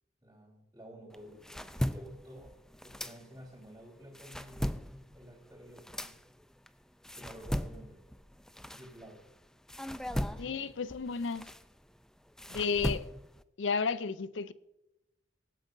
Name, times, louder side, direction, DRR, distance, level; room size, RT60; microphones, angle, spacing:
voice 1, 0.2-2.5 2.8-6.1 7.1-8.0 8.7-9.2 10.3-10.6 12.5-12.7, equal, 20° right, 3.3 m, -52 dB
sound 1, 1.1-3.6 4.0-9.3 9.7-13.4, equal, 5° left, 0.4 m, -38 dB
voice 2, 10.4-11.5 12.5-13.1 13.6-14.5, left 5 dB, 75° left, 0.5 m, -32 dB
23.5 x 9.1 x 2.6 m
head